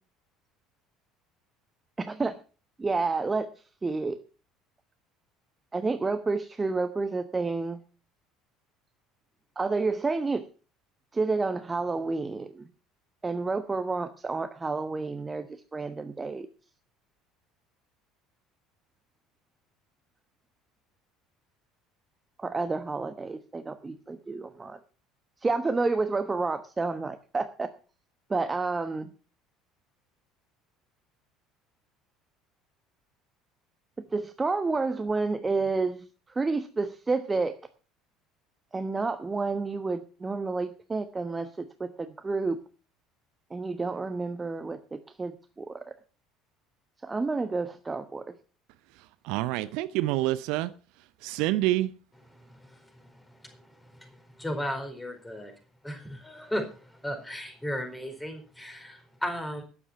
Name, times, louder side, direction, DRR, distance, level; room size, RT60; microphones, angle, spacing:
voice 1, 2.0-2.3 2.8-3.5 3.8-4.2 5.7-7.8 9.6-10.5 11.1-12.7 13.2-16.5 22.4-24.8 25.4-27.7 28.3-29.1 34.1-37.6 38.7-42.6 43.5-45.8 47.0-48.2, right 3 dB, 20° right, 1.1 m, -30 dB
voice 2, 49.2-50.7 51.2-51.9, right 16 dB, 60° right, 0.7 m, -27 dB
voice 3, 52.3-55.5 55.8-59.6, equal, 10° left, 4.5 m, -36 dB
13.0 x 9.8 x 5.8 m
figure-of-eight pair, 60°, 0 cm